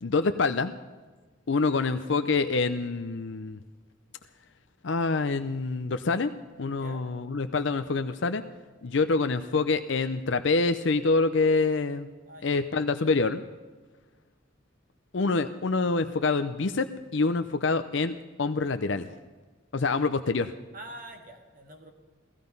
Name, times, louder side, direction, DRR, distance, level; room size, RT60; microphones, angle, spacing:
voice 1, 0.0-0.7 1.5-3.6 4.8-6.3 6.6-8.4 8.8-12.1 12.4-13.4 15.1-19.1 19.7-20.5, left 3 dB, 70° left, 10 dB, 0.6 m, -26 dB
voice 2, 12.3-12.6 20.7-21.9, right 1 dB, 45° right, 4 dB, 1.8 m, -45 dB
16.5 x 15.0 x 5.4 m, 1.3 s
head